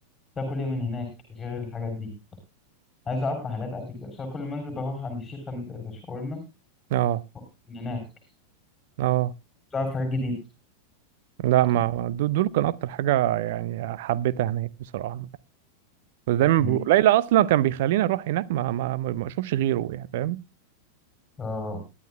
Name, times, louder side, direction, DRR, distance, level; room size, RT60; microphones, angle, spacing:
voice 1, 0.4-2.1 3.1-6.4 7.7-8.0 9.7-10.3 16.6-16.8 21.4-21.8, left 3 dB, 15° left, 3.5 m, -31 dB
voice 2, 6.9-7.2 9.0-9.3 11.4-15.3 16.3-20.4, right 13 dB, 50° right, 0.5 m, -23 dB
21.0 x 11.0 x 2.2 m
figure-of-eight pair, 90°, 0 cm